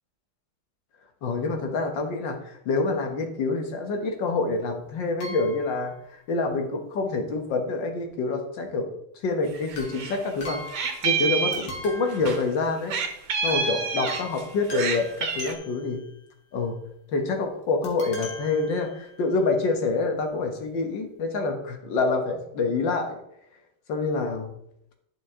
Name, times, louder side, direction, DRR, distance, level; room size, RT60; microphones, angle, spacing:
voice 1, 1.2-8.9 9.2-10.6 11.0-13.0 13.4-16.0 16.5-16.8 17.1-23.2 23.9-24.5, left 3 dB, 70° left, 4 dB, 1.8 m, -27 dB
sound 1, 5.2-5.9 9.7-11.3 11.5-13.0 13.5-13.7 14.1-16.1 17.8-19.3 20.0-20.1 20.3-20.4, left 2 dB, 85° left, 2.5 m, -41 dB
Meow, 9.5-10.2 10.4-12.4 12.9-14.4 14.7-15.5, right 5 dB, 75° right, 1.8 m, -27 dB
11.0 x 5.1 x 3.7 m, 0.76 s
omnidirectional pair, 2.1 m